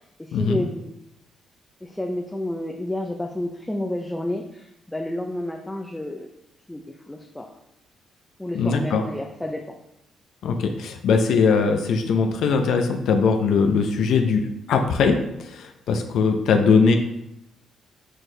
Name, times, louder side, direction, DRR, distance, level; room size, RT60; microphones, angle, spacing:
voice 1, 0.2-0.9 1.8-6.3 6.7-7.5 8.4-9.8, left 1 dB, 10° left, 2 dB, 0.6 m, -30 dB
voice 2, 8.5-9.0 10.4-17.0, left 5 dB, 75° left, 4 dB, 0.6 m, -20 dB
6.4 x 4.4 x 3.3 m, 0.82 s
cardioid pair, 90°, 0 cm